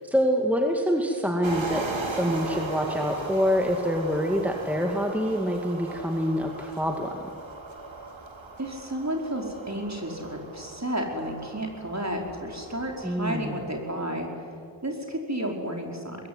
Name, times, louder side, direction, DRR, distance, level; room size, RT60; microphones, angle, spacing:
voice 1, 0.1-7.2 13.0-13.6, equal, 5° right, 2 dB, 2.3 m, -26 dB
sound 1, 1.4-13.9, right 2 dB, 75° right, 3.4 m, -38 dB
voice 2, 8.6-14.3 14.8-16.2, right 1 dB, 35° right, 1 dB, 5.2 m, -32 dB
24.5 x 21.0 x 9.7 m, 2.5 s
wide cardioid pair, 40°, 46 cm